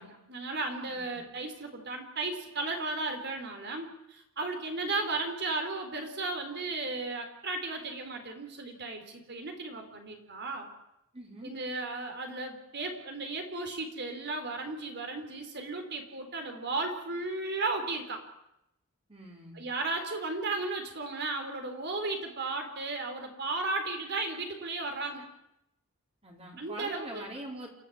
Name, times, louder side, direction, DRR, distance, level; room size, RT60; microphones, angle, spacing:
voice 1, 0.0-10.7 11.4-18.2 19.5-25.2 26.6-27.3, right 3 dB, 50° right, 5 dB, 4.0 m, -35 dB
voice 2, 0.8-1.3 11.1-11.5 19.1-19.7 26.2-27.7, right 1 dB, 25° right, 0 dB, 4.1 m, -44 dB
28.5 x 13.0 x 8.8 m, 0.82 s
head